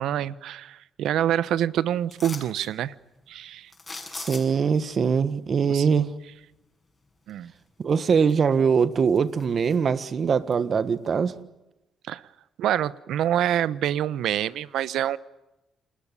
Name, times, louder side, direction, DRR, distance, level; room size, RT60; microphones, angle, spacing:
voice 1, 0.0-2.9 3.3-3.7 5.7-5.9 7.3-7.5 12.1-12.2 12.6-15.2, right 11 dB, 80° right, 18 dB, 0.9 m, -26 dB
sound 1, 2.1-2.7 3.7-4.7 7.3-7.4 7.9-8.6 8.9-10.1 10.5-10.6, left 3 dB, 25° left, 6.9 m, -40 dB
voice 2, 4.1-6.1 7.8-11.4, right 6 dB, 50° right, 14 dB, 1.5 m, -22 dB
29.0 x 21.0 x 9.9 m, 0.95 s
cardioid pair, 90°, 0 cm